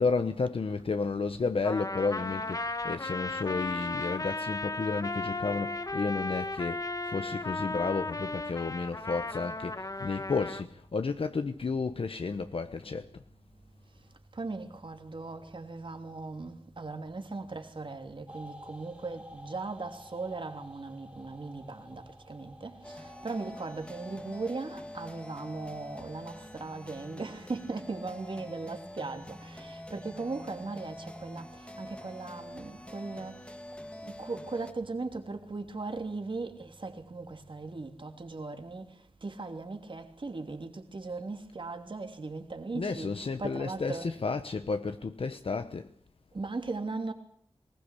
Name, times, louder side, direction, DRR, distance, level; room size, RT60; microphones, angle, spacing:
voice 1, 0.0-13.2 42.7-45.9, left 4 dB, 65° left, 1.0 m, -32 dB
Trumpet, 1.6-10.6, left 2 dB, 35° left, 1.1 m, -35 dB
voice 2, 14.3-33.5 34.0-44.1 46.3-47.1, right 3 dB, 55° right, 3.0 m, -38 dB
sound 1, 18.3-33.7, equal, 10° right, 2.9 m, -54 dB
sound 2, 22.8-34.7, left 1 dB, 10° left, 1.5 m, -46 dB
20.5 x 19.5 x 8.4 m
wide cardioid pair, 100°, 10 cm